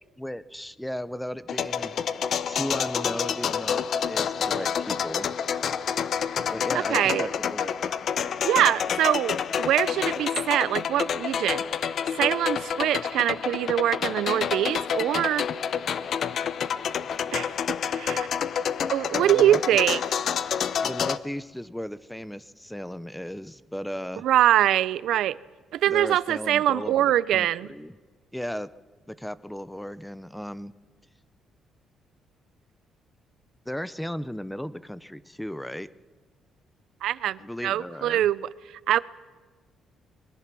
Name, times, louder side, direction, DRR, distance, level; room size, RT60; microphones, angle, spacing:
voice 1, 0.2-2.0 2.5-5.3 6.5-7.8 19.1-19.6 20.8-24.2 25.9-28.0 28.3-28.7 29.1-30.7 33.7-35.9 37.4-38.2, equal, 5° left, 0.6 m, -35 dB
sound 1, 1.5-21.2, left 7 dB, 45° left, 0.7 m, -28 dB
voice 2, 6.9-7.3 8.4-11.6 12.1-15.4 17.3-17.5 17.9-18.3 18.9-20.0 24.2-25.4 25.7-27.7 37.0-38.4 38.9-39.0, right 12 dB, 75° right, 0.6 m, -23 dB
24.5 x 22.0 x 6.2 m
cardioid pair, 175°, 0 cm